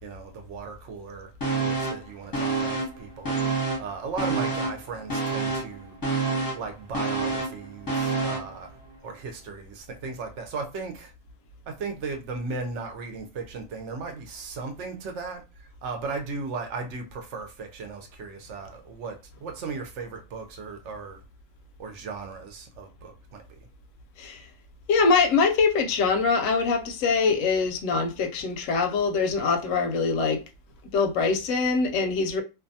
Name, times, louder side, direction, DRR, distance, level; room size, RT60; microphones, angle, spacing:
voice 1, 0.0-6.0 6.5-8.8 9.0-11.1 11.7-21.2 21.8-23.6, right 4 dB, 65° right, 0.9 m, -36 dB
sound 1, 1.4-2.1 2.3-3.9 4.2-8.5 8.9-9.0, right 3 dB, 20° left, 0.7 m, -28 dB
voice 2, 24.9-30.4 30.9-32.4, left 4 dB, 75° left, 0.9 m, -23 dB
2.6 x 2.2 x 2.6 m
omnidirectional pair, 1.4 m